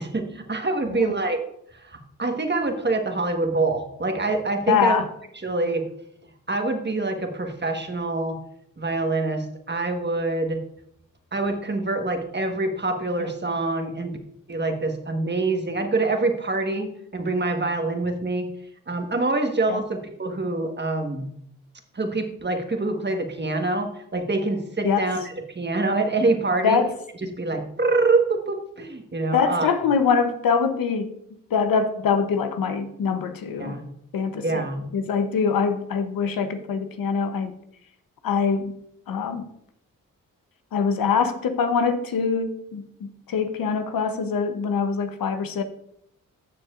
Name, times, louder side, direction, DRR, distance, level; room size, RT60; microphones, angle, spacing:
voice 1, 0.0-1.4 1.7-5.0 5.4-5.9 6.5-8.4 8.8-10.6 11.3-14.2 14.5-18.5 18.9-21.3 21.9-26.8 27.4-29.7 33.6-33.9 34.4-34.9, right 3 dB, 30° right, 5 dB, 1.4 m, -25 dB
voice 2, 4.7-5.1 13.2-13.3 19.7-19.8 24.8-25.0 26.6-26.9 29.3-31.1 31.5-33.8 34.1-34.6 34.9-37.5 38.2-38.8 39.1-39.4 40.7-45.6, left 6 dB, 85° left, 8 dB, 0.9 m, -24 dB
13.5 x 6.7 x 2.5 m, 0.74 s
cardioid pair, 60°, 34 cm